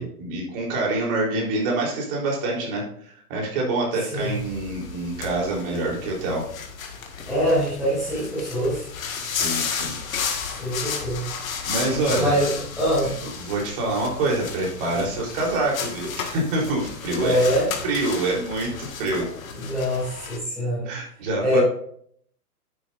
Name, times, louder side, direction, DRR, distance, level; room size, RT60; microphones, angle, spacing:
voice 1, 0.0-6.5 9.2-10.7 11.6-12.4 13.0-17.5 17.8-19.3 20.9-21.6, right 2 dB, 35° right, -2 dB, 3.9 m, -26 dB
sound 1, 4.2-20.4, left 6 dB, 60° left, 1.9 m, -33 dB
voice 2, 7.3-8.9 10.5-11.2 12.1-12.5 12.8-13.2 17.2-17.7 19.6-20.9 21.4-21.6, equal, ahead, -14 dB, 0.5 m, -23 dB
10.0 x 8.8 x 2.6 m, 0.62 s
hypercardioid pair, 150°, 47 cm